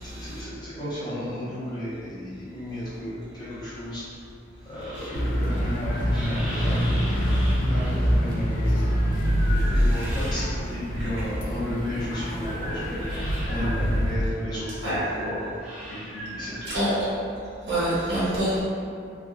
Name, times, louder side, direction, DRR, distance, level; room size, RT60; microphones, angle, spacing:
voice 1, 0.0-4.0 4.6-7.3 7.6-8.9 9.3-15.6 15.9-16.7, left 1 dB, 20° left, -12 dB, 0.8 m, -34 dB
sound 1, 3.7-10.8 11.2-17.0, equal, 5° right, 0.5 m, -40 dB
sound 2, 5.1-14.2, equal, 45° left, 0.4 m, -25 dB
voice 2, 17.7-18.6, right 1 dB, 70° right, -11 dB, 1.4 m, -25 dB
3.5 x 2.3 x 2.3 m, 2.4 s
head